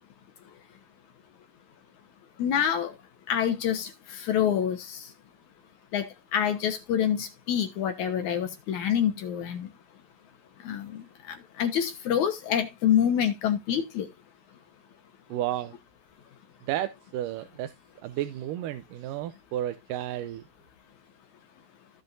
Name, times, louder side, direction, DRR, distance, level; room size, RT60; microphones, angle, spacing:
voice 1, 2.4-2.9 3.3-5.1 5.9-6.1 6.3-9.7 10.6-14.1, left 9 dB, 65° left, 2.3 m, -27 dB
voice 2, 15.3-15.7 16.7-17.7 18.0-20.4, right 13 dB, 80° right, 2.2 m, -32 dB
16.0 x 5.4 x 2.6 m
omnidirectional pair, 3.9 m